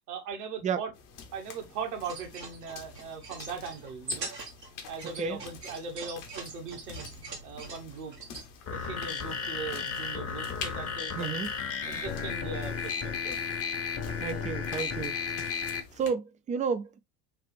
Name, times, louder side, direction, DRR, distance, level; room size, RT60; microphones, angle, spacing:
voice 1, 0.1-0.9 1.3-4.3 4.9-7.1 7.4-8.1 8.7-11.5 11.9-12.9 13.2-13.4, right 5 dB, 70° right, 1.5 m, -39 dB
sound 1, 0.9-16.1, left 6 dB, 60° left, 1.3 m, -48 dB
sound 2, 1.9-8.5, right 2 dB, 90° right, 1.8 m, -42 dB
sound 3, 8.7-15.8, left 6 dB, 30° left, 1.0 m, -34 dB
voice 2, 11.1-11.5 14.2-15.1 16.0-17.0, right 6 dB, 15° right, 0.4 m, -31 dB
5.9 x 2.5 x 3.3 m
hypercardioid pair, 70°, 48 cm